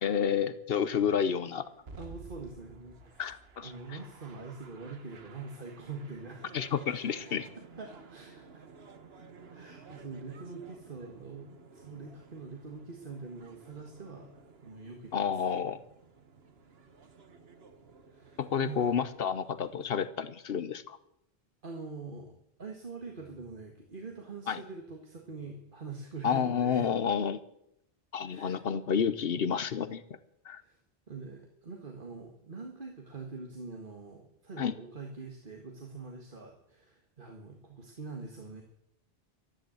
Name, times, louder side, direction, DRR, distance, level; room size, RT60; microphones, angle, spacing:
voice 1, 0.0-1.6 3.2-3.7 6.5-7.5 15.1-15.8 18.4-21.0 24.5-24.6 26.2-27.4 28.1-30.0 30.5-30.6 34.6-34.7, left 7 dB, 70° left, 14 dB, 1.0 m, -30 dB
sound 1, 0.9-20.1, right 4 dB, 75° right, 1.5 m, -54 dB
voice 2, 1.9-3.3 3.6-6.5 7.6-8.7 9.5-15.6 18.1-19.0 21.6-26.9 28.2-28.6 30.5-30.8 31.1-38.6, right 4 dB, 55° right, 2 dB, 1.9 m, -44 dB
13.0 x 11.0 x 7.8 m, 0.77 s
omnidirectional pair, 1.0 m